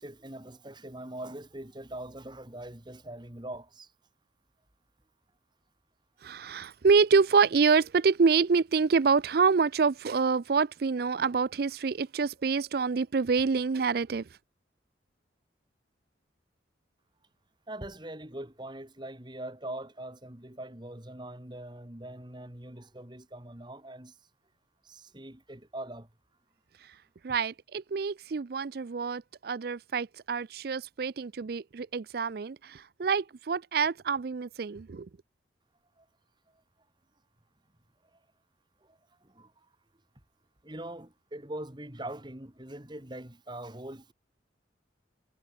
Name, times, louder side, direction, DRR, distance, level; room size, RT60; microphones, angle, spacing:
voice 1, 0.0-3.9 17.7-24.2 24.8-26.1 36.0-36.1 38.8-39.5 40.6-44.1, right 1 dB, 25° right, 2.3 m, -42 dB
voice 2, 6.2-14.2 27.2-35.1, right 5 dB, 55° right, 0.4 m, -26 dB
head